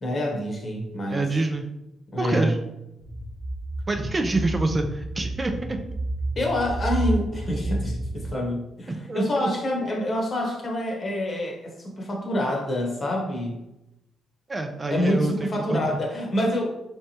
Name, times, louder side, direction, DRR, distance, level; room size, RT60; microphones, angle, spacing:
voice 1, 0.0-1.2 2.1-2.5 6.4-13.6 14.9-16.7, left 1 dB, 45° left, 0 dB, 1.1 m, -27 dB
voice 2, 1.1-1.7 2.2-2.6 3.9-5.8 9.1-9.5 14.5-16.0, right 2 dB, 30° right, 4 dB, 0.4 m, -26 dB
sound 1, 3.0-8.4, right 2 dB, ahead, 0.9 m, -30 dB
3.4 x 3.2 x 2.8 m, 0.89 s
supercardioid pair, 65°, 0 cm